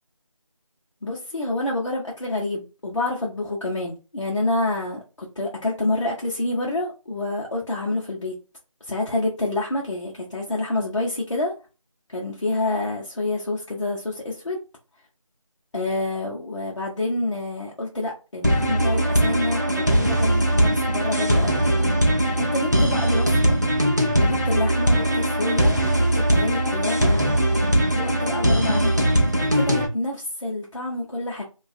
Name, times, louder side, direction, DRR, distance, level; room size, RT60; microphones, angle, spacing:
voice 1, 1.0-8.3 8.9-11.5 12.1-14.6 15.7-21.6 22.4-23.6 24.2-27.1 27.9-29.1 29.4-31.4, left 2 dB, 60° left, 0.7 m, -28 dB
sound 1, 18.4-29.9, right 1 dB, 35° right, 0.4 m, -20 dB
2.4 x 2.3 x 2.5 m
figure-of-eight pair, 175°, 18 cm